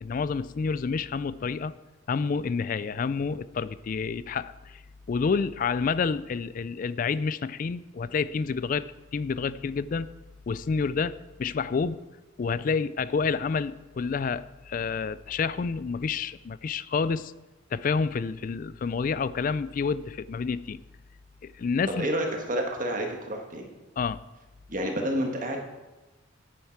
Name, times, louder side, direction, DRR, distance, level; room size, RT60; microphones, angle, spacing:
voice 1, 0.0-1.7 2.1-4.8 5.1-10.1 10.5-12.0 12.4-17.3 17.7-20.8 21.4-22.1 24.0-24.2, left 5 dB, 45° left, 17 dB, 0.3 m, -29 dB
voice 2, 22.0-23.7 24.7-25.6, equal, 40° right, 2 dB, 1.7 m, -29 dB
9.9 x 9.3 x 4.6 m, 1.1 s
head